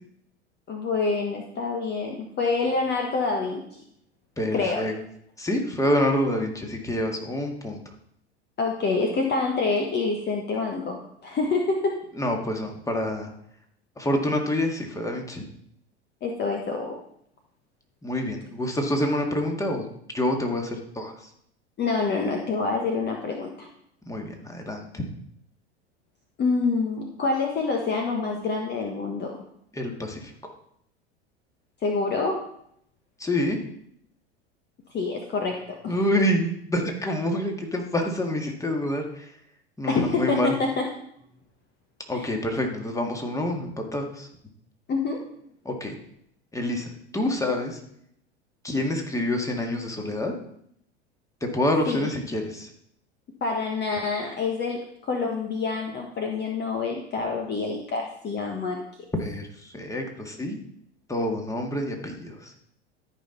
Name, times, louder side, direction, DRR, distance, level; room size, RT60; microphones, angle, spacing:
voice 1, 0.7-3.6 4.5-4.9 8.6-12.0 16.2-17.0 21.8-23.7 26.4-29.4 31.8-32.4 34.9-36.0 39.9-40.9 42.1-42.3 44.9-45.2 51.9-52.1 53.4-58.8, left 4 dB, 30° left, 2 dB, 1.4 m, -27 dB
voice 2, 4.4-4.9 5.4-7.8 12.2-13.3 14.0-15.4 18.0-19.9 20.1-21.3 24.1-25.0 29.7-30.3 33.2-33.6 35.9-39.3 39.8-40.5 42.1-44.3 45.6-46.0 46.5-47.8 48.6-50.3 51.4-52.7 59.2-60.6 61.1-62.5, left 1 dB, 10° left, 3 dB, 2.0 m, -27 dB
13.0 x 5.7 x 4.0 m, 0.70 s
hypercardioid pair, 85°, 34 cm